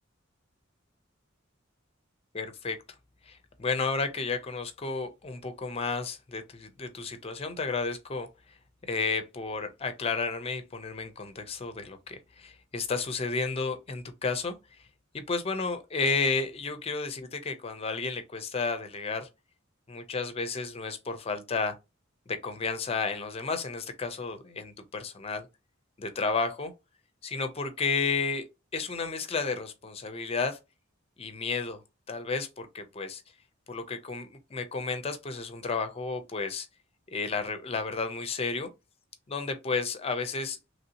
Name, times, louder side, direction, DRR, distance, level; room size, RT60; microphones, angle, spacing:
voice 1, 2.3-2.8 3.2-8.3 8.8-14.8 15.1-19.3 19.9-21.7 22.3-25.5 26.0-26.7 27.2-28.5 28.7-30.6 31.2-31.8 32.1-33.2 33.7-36.7 37.1-38.7 39.3-40.6, left 4 dB, 30° left, 0.4 m, -32 dB
3.1 x 2.7 x 2.7 m
head